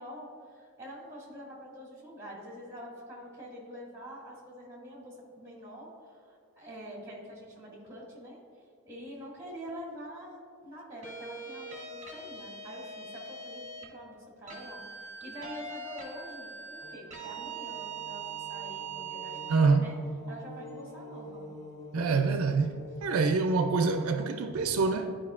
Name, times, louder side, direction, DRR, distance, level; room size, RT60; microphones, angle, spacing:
voice 1, 0.0-8.4 8.8-20.0 20.3-21.4 21.9-22.3 24.5-24.8, equal, 15° right, 1.9 m, -46 dB
sound 1, 11.0-13.9 14.5-19.6, right 5 dB, 30° right, 1.1 m, -42 dB
sound 2, 16.8-24.8, left 1 dB, 15° left, 0.8 m, -47 dB
voice 2, 19.5-19.9 21.9-22.7 23.0-25.2, right 4 dB, 70° right, 0.4 m, -26 dB
12.5 x 4.9 x 2.4 m
head